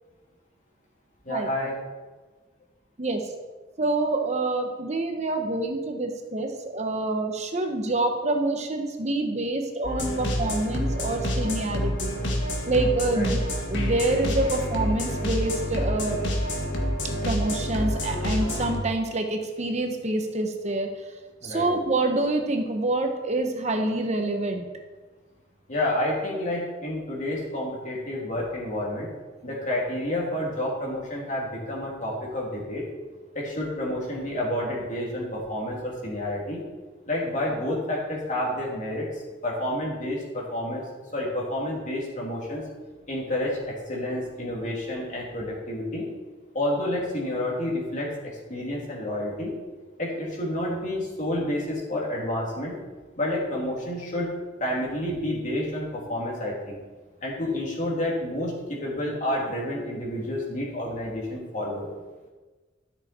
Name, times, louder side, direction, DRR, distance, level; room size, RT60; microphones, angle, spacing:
voice 1, 1.2-1.8 13.1-13.3 21.4-21.7 25.7-29.1 29.4-32.8 33.3-36.6 37.1-39.1 39.4-40.8 41.1-42.6 43.1-46.1 46.5-49.5 50.0-52.7 53.2-54.3 54.6-56.8 57.2-61.9, left 1 dB, 45° left, -3 dB, 2.7 m, -29 dB
voice 2, 3.8-12.1 12.7-13.4 13.7-16.2 17.2-20.9 21.4-24.7, right 2 dB, 40° right, 4 dB, 1.0 m, -26 dB
sound 1, 9.8-18.8, equal, 80° left, 1.9 m, -28 dB
13.0 x 6.6 x 4.3 m, 1.3 s
head